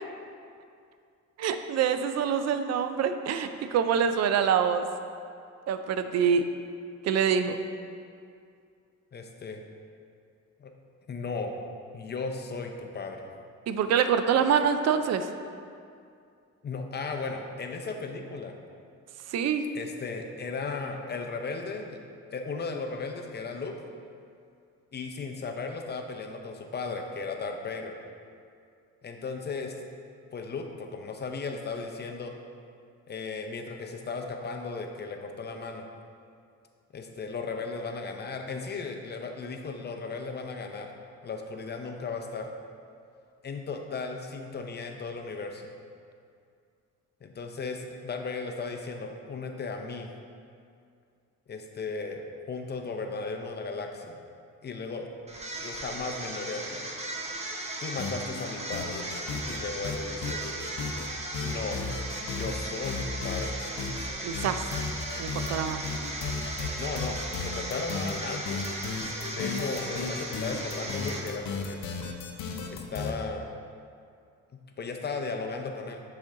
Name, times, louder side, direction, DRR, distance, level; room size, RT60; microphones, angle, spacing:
voice 1, 1.4-4.8 5.7-6.4 7.0-7.6 13.7-15.3 19.3-19.6 64.2-64.6 65.2-65.8, right 7 dB, 60° right, 9 dB, 0.4 m, -25 dB
voice 2, 9.1-9.6 10.6-10.7 11.1-11.5 11.9-13.3 16.6-18.5 19.7-22.0 22.3-23.8 24.9-27.9 29.0-29.7 30.3-32.3 33.1-35.9 36.9-40.9 41.2-42.5 43.4-45.6 47.2-50.1 51.5-54.2 54.6-55.1 55.6-56.9 57.8-59.1 59.4-60.4 61.4-61.8 62.3-63.6 64.5-64.6 66.8-68.6 69.4-71.8 72.7-73.5 74.8-76.0, left 4 dB, 35° left, 4 dB, 0.6 m, -36 dB
sound 1, 55.3-71.6, right 1 dB, 20° right, 0.7 m, -37 dB
sound 2, 58.0-58.4 58.7-59.6 59.8-61.1 61.3-62.6 62.8-64.1 64.3-73.1, left 5 dB, 75° left, 0.7 m, -34 dB
6.2 x 4.3 x 3.7 m, 2.3 s
cardioid pair, 90°, 30 cm